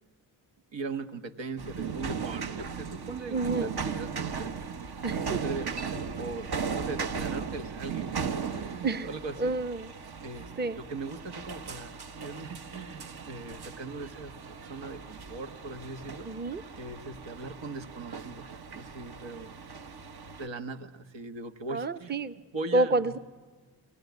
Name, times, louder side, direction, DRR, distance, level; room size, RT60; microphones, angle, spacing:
voice 1, 0.7-4.5 5.1-6.5 6.7-9.6 10.2-16.3 16.7-19.5 20.4-22.1 22.5-23.2, right 3 dB, 80° right, 6 dB, 1.5 m, -40 dB
sound 1, 1.6-20.5, right 6 dB, 60° right, 1.3 m, -37 dB
voice 2, 3.3-3.7 5.0-5.4 8.8-9.1 9.4-9.9 10.6-10.8 16.3-16.6 21.7-22.3 22.7-23.2, right 2 dB, 25° right, 10 dB, 0.8 m, -28 dB
30.0 x 20.5 x 9.4 m, 1.4 s
cardioid pair, 50°, 44 cm